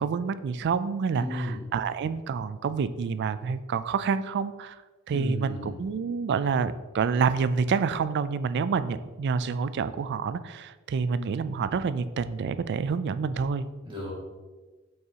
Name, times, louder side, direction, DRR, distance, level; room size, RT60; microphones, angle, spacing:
voice 1, 0.0-4.8 5.1-13.7, right 5 dB, 55° right, 14 dB, 0.3 m, -28 dB
voice 2, 1.1-1.6 5.1-5.7 13.8-14.1, left 1 dB, 25° right, -5 dB, 2.2 m, -33 dB
7.7 x 5.5 x 2.9 m, 1.3 s
head